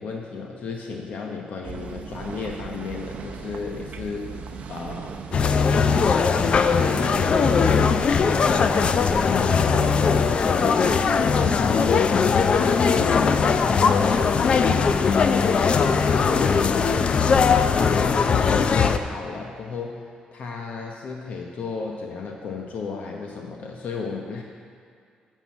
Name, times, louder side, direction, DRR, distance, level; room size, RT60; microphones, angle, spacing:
voice 1, 0.0-5.2 5.7-6.5 6.7-7.5 8.3-15.4 16.0-17.4 17.7-20.0 20.3-24.4, left 4 dB, 65° left, 1 dB, 0.9 m, -34 dB
sound 1, 1.6-11.7, right 6 dB, 55° right, 0.6 m, -38 dB
sound 2, 5.3-19.0, left 5 dB, 40° left, 0.4 m, -20 dB
11.5 x 4.6 x 7.0 m, 2.2 s
cardioid pair, 145°, 3 cm